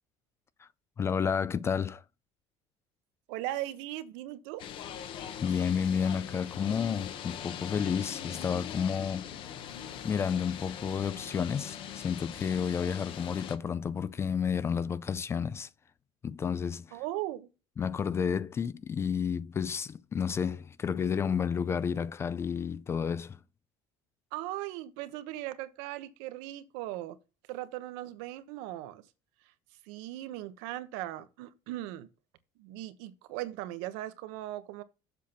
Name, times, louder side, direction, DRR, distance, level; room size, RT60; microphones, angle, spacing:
voice 1, 1.0-2.0 5.4-9.3 10.0-15.7 16.2-17.0 17.8-23.4, left 7 dB, 25° left, 0.3 m, -31 dB
voice 2, 3.3-4.6 16.9-17.5 24.3-27.2 27.5-29.1 29.4-29.5 29.8-32.1 32.6-34.8, right 15 dB, 85° right, 1.1 m, -38 dB
sound 1, 4.6-13.6, left 9 dB, 50° left, 1.1 m, -41 dB
7.5 x 5.7 x 5.7 m
cardioid pair, 140°, 11 cm